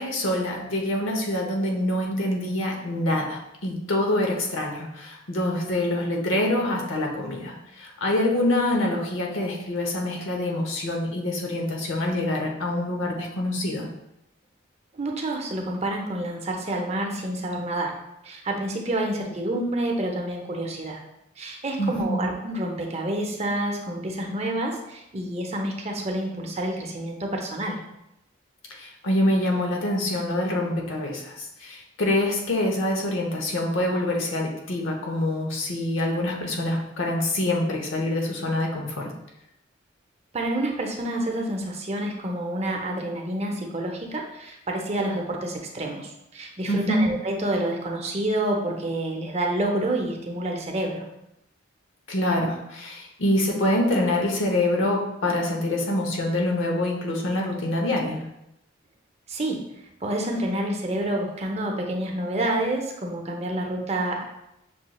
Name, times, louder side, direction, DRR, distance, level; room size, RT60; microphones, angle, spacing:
voice 1, 0.0-13.9 21.8-22.3 28.7-39.1 46.7-47.0 52.1-58.2, left 1 dB, 80° left, 1 dB, 0.8 m, -25 dB
voice 2, 14.9-17.9 18.2-21.0 21.4-27.8 40.3-51.0 59.3-59.7 60.0-64.2, right 1 dB, 35° right, 1 dB, 0.6 m, -28 dB
6.1 x 3.0 x 2.3 m, 0.84 s
head